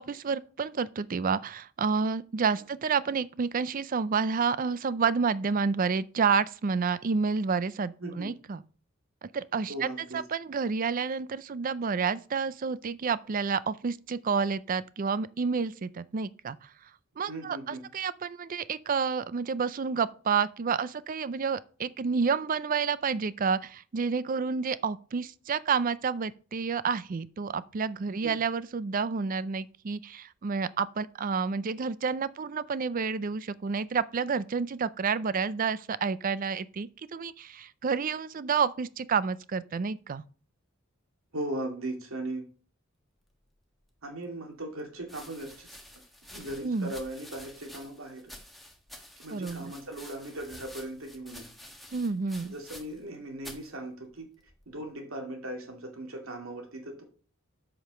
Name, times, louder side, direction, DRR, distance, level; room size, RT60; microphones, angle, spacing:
voice 1, 0.0-8.6 9.2-16.6 17.2-40.2 46.6-46.9 49.3-49.7 51.9-52.5, right 5 dB, 40° right, 0.4 m, -29 dB
voice 2, 8.0-8.3 9.7-10.2 17.3-17.8 28.2-28.4 41.3-42.5 44.0-45.7 46.3-48.3 49.2-51.5 52.5-54.3 54.7-57.0, right 1 dB, 80° right, 2.3 m, -38 dB
sound 1, 44.0-44.1 45.0-53.1 53.4-53.7 54.5-54.9, left 1 dB, ahead, 1.4 m, -49 dB
7.9 x 5.1 x 5.6 m
head